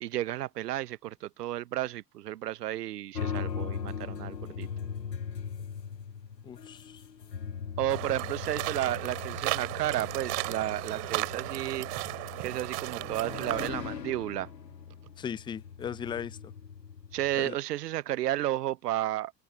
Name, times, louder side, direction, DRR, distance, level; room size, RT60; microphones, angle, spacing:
voice 1, 0.0-4.7 7.8-11.9 12.4-14.5 17.1-19.4, right 14 dB, 70° right, 0.9 m, -32 dB
sound 1, 3.1-17.4, left 7 dB, 80° left, 1.8 m, -39 dB
voice 2, 6.4-7.0 15.2-16.5 17.3-17.6, left 8 dB, 10° left, 0.4 m, -38 dB
sound 2, 7.9-13.7, right 35 dB, 55° right, 3.1 m, -35 dB
figure-of-eight pair, 70°, 49 cm